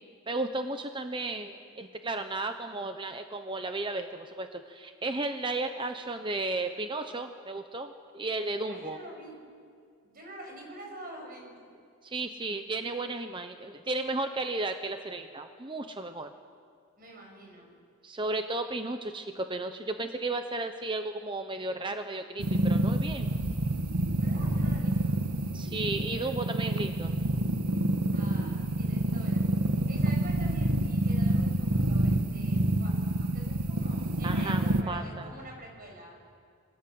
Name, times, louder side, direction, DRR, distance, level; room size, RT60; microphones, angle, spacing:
voice 1, 0.3-9.0 12.0-16.3 18.0-23.3 25.5-27.1 34.2-35.3, right 2 dB, 20° right, 7 dB, 0.9 m, -34 dB
voice 2, 8.7-9.4 10.0-11.5 17.0-17.7 24.2-25.2 26.1-26.3 28.1-36.2, right 1 dB, 40° right, 1 dB, 6.8 m, -47 dB
sound 1, 22.4-34.8, right 1 dB, 85° right, 1.5 m, -28 dB
28.0 x 21.0 x 7.8 m, 2.3 s
head